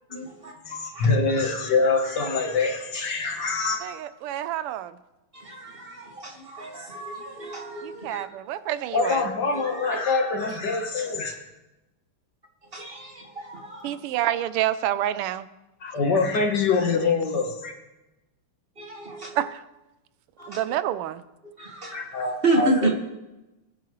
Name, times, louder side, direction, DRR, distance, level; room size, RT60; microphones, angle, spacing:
voice 1, 0.1-0.5 0.9-1.1 5.3-8.2 9.5-10.1 12.7-14.0 18.8-19.4 20.4-20.7 21.6-22.9, right 2 dB, 25° right, 1 dB, 1.7 m, -30 dB
voice 2, 0.7-3.8 8.9-11.3 15.8-17.7 21.9-22.9, left 4 dB, 55° left, 3 dB, 1.7 m, -24 dB
voice 3, 3.8-5.0 7.8-9.3 13.8-15.5 19.3-19.6 20.5-21.2, right 12 dB, 85° right, 14 dB, 1.5 m, -28 dB
21.0 x 9.8 x 3.1 m, 1.0 s
omnidirectional pair, 2.4 m